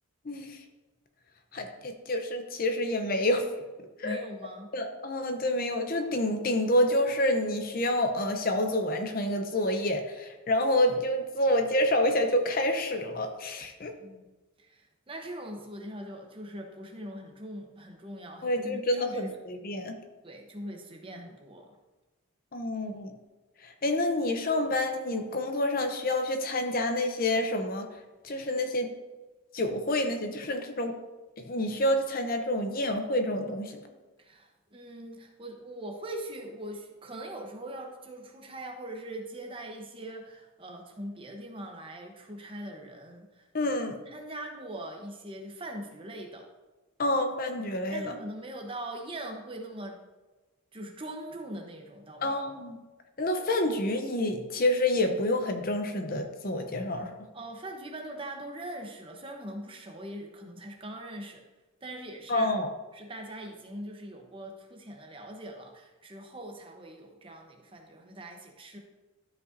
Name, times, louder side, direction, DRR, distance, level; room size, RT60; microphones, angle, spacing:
voice 1, 0.3-0.6 1.5-3.4 4.0-4.2 4.7-13.9 18.4-19.9 22.5-23.1 23.6-27.9 28.2-28.9 29.5-31.0 31.5-33.8 43.5-44.0 47.0-48.2 52.2-52.8 53.2-57.1 62.3-62.7, left 1 dB, 40° left, 6 dB, 0.6 m, -28 dB
voice 2, 4.0-4.7 14.0-14.2 14.6-19.2 20.2-21.8 34.2-43.4 44.1-46.5 47.9-50.0 50.7-52.4 57.3-61.4 61.8-62.5 62.9-68.8, right 1 dB, 25° right, 2 dB, 0.9 m, -41 dB
12.5 x 5.3 x 2.7 m, 1.2 s
head